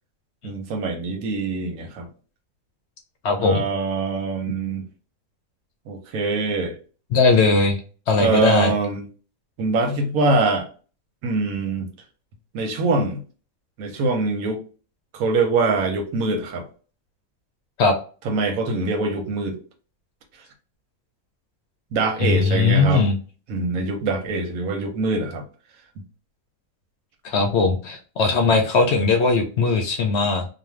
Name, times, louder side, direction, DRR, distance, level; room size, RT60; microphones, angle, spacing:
voice 1, 0.4-2.1 3.4-4.8 5.9-6.8 8.2-9.0 9.6-10.7 11.2-11.9 12.5-13.2 13.8-14.6 15.1-16.7 18.2-19.6 21.9-23.0 23.5-25.4, right 3 dB, 80° right, 1.1 m, -23 dB
voice 2, 3.2-3.7 7.1-7.8 8.1-8.7 17.8-17.9 22.2-23.2 27.2-30.5, left 4 dB, 65° left, 0.7 m, -19 dB
2.5 x 2.3 x 3.1 m
omnidirectional pair, 1.5 m